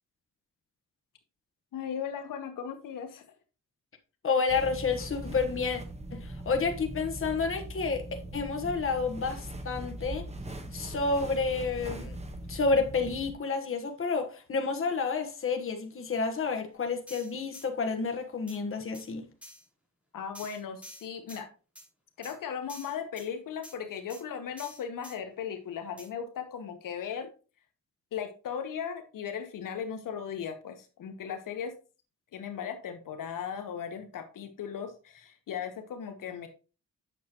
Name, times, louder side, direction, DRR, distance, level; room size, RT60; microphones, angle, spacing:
voice 1, 1.7-3.3 20.1-21.5 22.2-27.3 28.1-31.7 32.3-36.5, left 7 dB, 85° left, 1.2 m, -37 dB
voice 2, 4.2-5.8 6.1-8.1 8.3-10.2 10.7-12.2 12.5-19.3, left 4 dB, 40° left, 1.3 m, -30 dB
sound 1, 4.5-13.3, right 1 dB, 20° right, 1.1 m, -40 dB
sound 2, 17.1-17.7 18.5-18.6 18.9-19.1 19.4-19.6 20.3-21.4 21.7-21.9 22.2-22.3 22.7-23.3 23.6-23.8 24.1-24.2 24.6-25.2 26.0-26.1, equal, 5° right, 3.7 m, -48 dB
8.3 x 6.4 x 3.0 m
cardioid pair, 105°, 32 cm